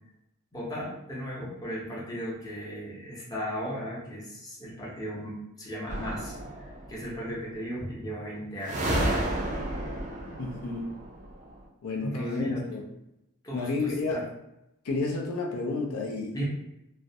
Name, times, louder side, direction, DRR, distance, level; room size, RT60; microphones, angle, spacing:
voice 1, 0.5-9.1 11.9-12.7 13.4-14.2 16.3-16.4, equal, 15° left, -6 dB, 0.6 m, -36 dB
sound 1, 5.9-7.0 8.6-11.5, right 1 dB, 35° right, 0.4 m, -31 dB
voice 2, 10.4-10.9 11.8-12.8 13.5-14.2 14.8-16.4, left 3 dB, 85° left, 0 dB, 0.5 m, -31 dB
2.3 x 2.0 x 2.7 m, 0.85 s
head